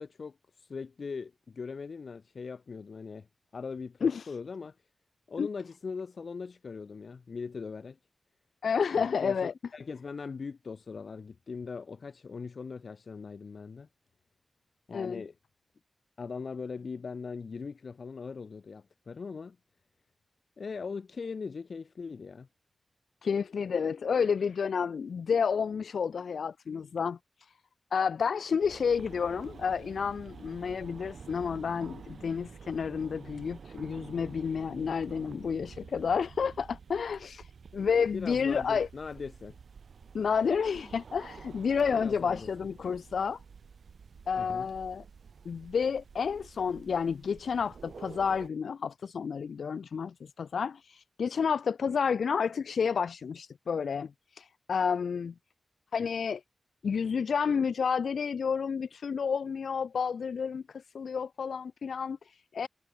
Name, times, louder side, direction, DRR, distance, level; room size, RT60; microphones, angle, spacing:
voice 1, 0.0-3.3 3.5-4.8 5.3-8.0 8.9-13.9 14.9-15.3 16.2-19.6 20.6-22.5 38.1-39.6 41.9-42.5 44.3-44.7, left 5 dB, 55° left, 1.1 m, -40 dB
voice 2, 4.0-4.3 5.4-5.5 8.6-9.5 14.9-15.2 23.2-27.5 27.9-38.9 40.1-43.4 44.3-45.0 45.4-55.3 55.9-56.4 56.8-62.7, left 6 dB, 90° left, 0.7 m, -30 dB
sound 1, 28.6-48.5, right 6 dB, 75° right, 5.6 m, -49 dB
wide cardioid pair, 165°, 0 cm